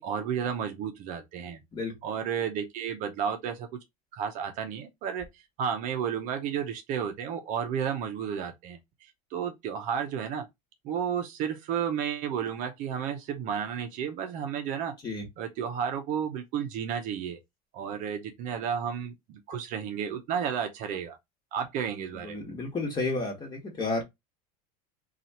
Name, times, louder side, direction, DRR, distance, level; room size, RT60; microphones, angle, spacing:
voice 1, 0.0-1.6 2.0-3.7 4.1-10.4 10.8-14.9 15.4-17.4 17.7-21.2 21.5-22.4, right 8 dB, 45° right, 0.6 m, -32 dB
voice 2, 22.2-24.0, left 3 dB, 20° left, 1.3 m, -31 dB
2.8 x 2.4 x 4.1 m
supercardioid pair, 140°, 19 cm